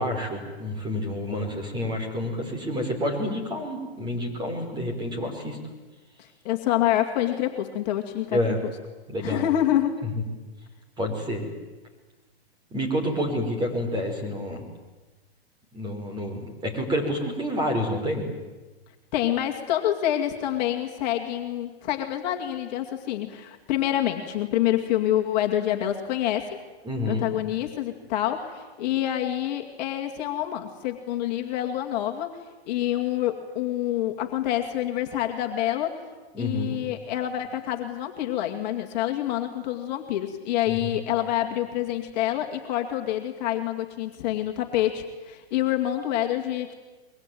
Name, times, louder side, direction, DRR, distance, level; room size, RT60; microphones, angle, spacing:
voice 1, 0.0-5.6 8.3-8.6 9.1-9.5 10.0-10.1 11.0-11.4 12.7-14.6 15.7-18.3 26.8-27.3 36.3-36.8 40.7-41.0, left 1 dB, 15° right, 4 dB, 4.9 m, -28 dB
voice 2, 6.2-8.5 9.2-10.0 19.1-26.6 27.1-32.4 32.7-36.0 36.4-46.7, left 12 dB, 40° left, 2 dB, 2.4 m, -27 dB
24.0 x 22.5 x 9.3 m, 1.2 s
hypercardioid pair, 150°, 32 cm